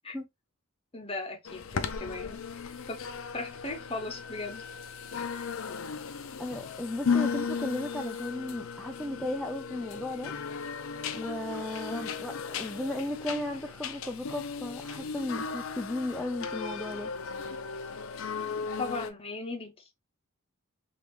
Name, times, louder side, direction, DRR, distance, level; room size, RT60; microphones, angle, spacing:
voice 1, 0.9-3.0 3.3-4.6 11.9-12.1 18.8-19.9, left 3 dB, 25° left, 0.9 m, -38 dB
sound 1, 1.5-19.1, left 5 dB, 70° left, 0.5 m, -36 dB
voice 2, 6.4-10.3 11.1-17.1, left 1 dB, 5° left, 0.3 m, -35 dB
3.6 x 2.6 x 3.1 m
head